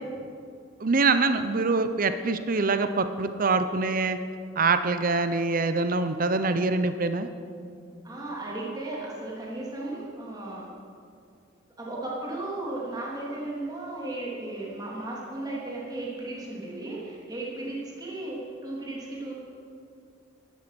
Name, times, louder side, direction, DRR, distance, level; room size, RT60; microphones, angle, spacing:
voice 1, 0.8-4.2 4.6-7.3, right 3 dB, 45° right, 10 dB, 0.7 m, -24 dB
voice 2, 8.0-10.7 11.8-19.3, right 2 dB, 20° right, -5 dB, 3.3 m, -35 dB
17.0 x 13.0 x 6.1 m, 2.4 s
head